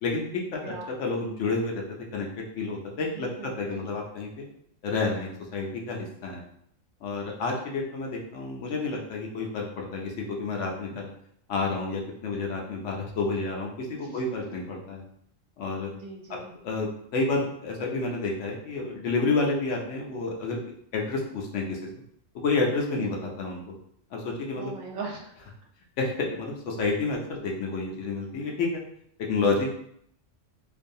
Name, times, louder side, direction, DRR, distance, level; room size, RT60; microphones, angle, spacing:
voice 1, 0.0-0.7 1.0-1.8 2.1-4.5 4.8-6.4 7.0-11.1 11.5-15.0 15.6-15.9 16.6-16.9 17.1-20.6 20.9-21.8 22.4-23.6 24.1-24.7 26.0-28.8 29.2-29.7, left 3 dB, 70° left, 0 dB, 0.9 m, -29 dB
voice 2, 0.6-0.9 3.1-3.9 14.0-14.2 15.9-16.5 23.0-23.1 24.5-25.3, right 4 dB, 70° right, -1 dB, 0.9 m, -39 dB
2.6 x 2.3 x 2.6 m, 0.69 s
omnidirectional pair, 1.3 m